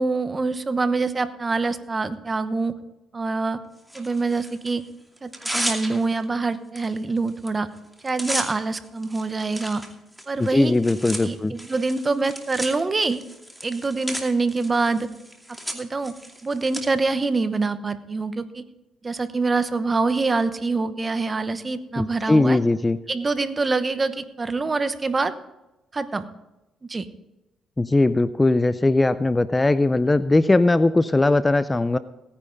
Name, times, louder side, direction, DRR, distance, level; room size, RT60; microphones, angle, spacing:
voice 1, 0.0-2.7 3.1-3.6 3.9-4.8 5.2-7.7 8.0-9.8 10.3-10.7 11.2-13.2 13.6-15.1 15.7-16.1 16.4-18.6 19.0-22.6 23.1-25.3 25.9-26.2 26.8-27.1, right 3 dB, 30° right, 12 dB, 1.0 m, -25 dB
Tearing, 3.9-4.7 5.2-6.2 6.8-6.9 7.2-7.5 7.8-16.8, equal, ahead, 2.3 m, -34 dB
voice 2, 10.4-11.5 22.0-23.0 27.8-32.0, left 2 dB, 20° left, 14 dB, 0.5 m, -19 dB
17.0 x 9.9 x 4.0 m, 0.99 s
cardioid pair, 90°, 0 cm